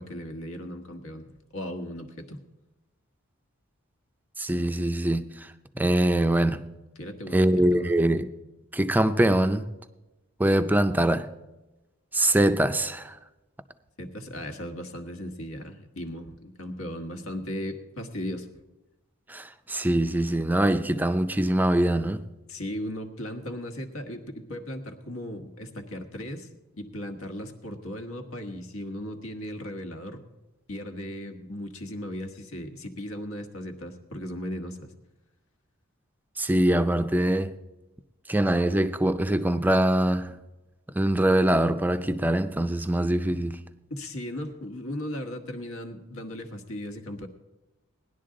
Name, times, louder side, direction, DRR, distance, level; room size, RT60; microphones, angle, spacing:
voice 1, 0.0-2.4 7.0-8.0 14.0-18.5 22.5-26.5 26.8-30.2 30.7-34.9 43.9-47.3, left 1 dB, 75° left, 1.4 m, -37 dB
voice 2, 4.4-5.5 5.8-6.7 7.3-8.3 8.7-9.6 10.4-11.3 12.1-13.2 19.3-22.2 36.4-37.5 38.3-40.3 40.9-43.6, right 1 dB, 10° right, 0.4 m, -23 dB
18.5 x 11.0 x 3.8 m
head